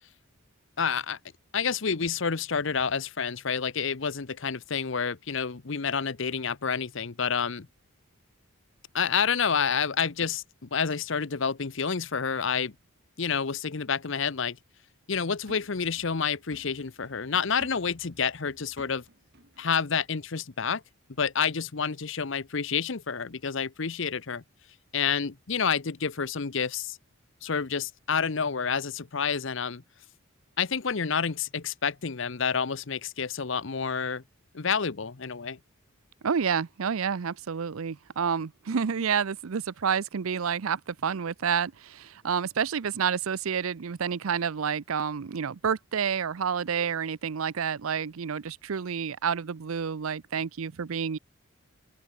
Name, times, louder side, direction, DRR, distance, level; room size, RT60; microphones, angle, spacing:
voice 1, 0.8-1.2 1.5-7.7 8.9-12.7 13.2-14.6 15.1-19.0 19.6-20.8 21.2-24.4 24.9-27.0 27.4-29.8 30.6-34.2 34.5-35.6, left 6 dB, 60° left, 0.8 m, -29 dB
Trash Can Slam, 15.1-19.7 20.1-20.2, right 1 dB, 55° right, 5.0 m, -55 dB
voice 2, 36.2-51.2, right 7 dB, 75° right, 0.5 m, -29 dB
open air
head